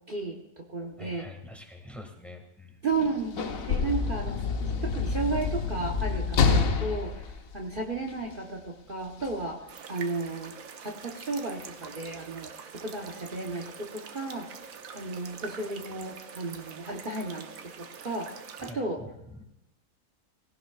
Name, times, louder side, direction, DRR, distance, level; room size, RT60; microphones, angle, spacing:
voice 1, 0.1-1.3 2.8-4.4 4.8-7.2 7.5-9.6 9.9-10.5 10.8-14.5 14.9-18.3 18.6-19.0, right 3 dB, 40° right, 1 dB, 1.2 m, -33 dB
voice 2, 1.0-2.8 18.6-19.4, left 1 dB, ahead, 2 dB, 1.9 m, -46 dB
Sliding door / Slam, 2.9-8.3 9.2-9.4, left 5 dB, 75° left, 1.4 m, -28 dB
sound 1, 9.7-18.7, right 6 dB, 75° right, 1.2 m, -45 dB
18.0 x 16.0 x 2.4 m, 0.88 s
omnidirectional pair, 1.5 m